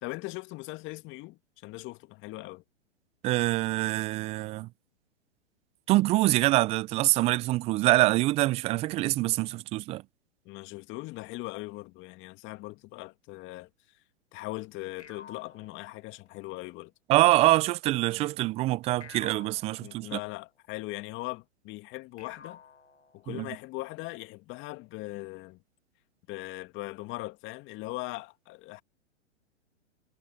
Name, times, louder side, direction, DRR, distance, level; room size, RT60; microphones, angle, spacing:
voice 1, 0.0-2.6 10.5-13.7 14.3-16.9 19.8-22.6 23.1-25.6 26.3-28.8, left 21 dB, 35° left, 2.1 m, -40 dB
voice 2, 3.2-4.7 5.9-10.0 17.1-20.2 23.3-23.5, right 18 dB, 20° right, 0.4 m, -25 dB
sound 1, 15.0-16.6 19.0-20.6 22.2-23.7, left 6 dB, 85° left, 7.6 m, -52 dB
hypercardioid pair, 115°, 34 cm